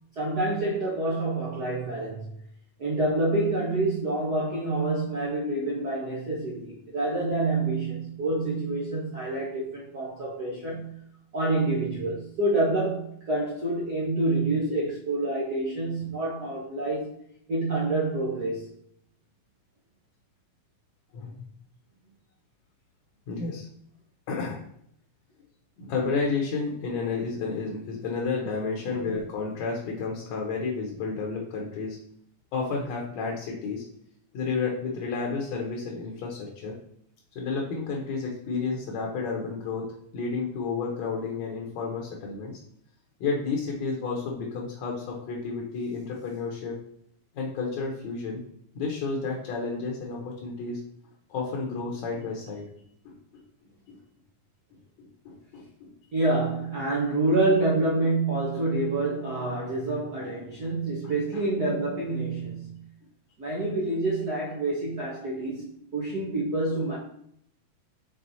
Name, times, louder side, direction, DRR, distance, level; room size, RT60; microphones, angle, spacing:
voice 1, 0.2-2.3 2.8-10.9 11.3-17.1 17.5-18.7 56.1-62.8 63.4-67.0, right 2 dB, 65° right, -4 dB, 0.9 m, -27 dB
voice 2, 21.1-21.5 23.3-23.7 24.3-24.6 25.8-32.0 32.5-33.9 34.3-36.8 37.4-42.6 43.2-46.8 47.3-48.4 48.8-50.8 51.3-52.6 53.1-53.4 53.9-54.0 55.0-55.9 60.5-60.6 61.3-61.4, left 4 dB, 65° left, -1 dB, 2.1 m, -31 dB
6.2 x 4.0 x 4.0 m, 0.69 s
omnidirectional pair, 3.6 m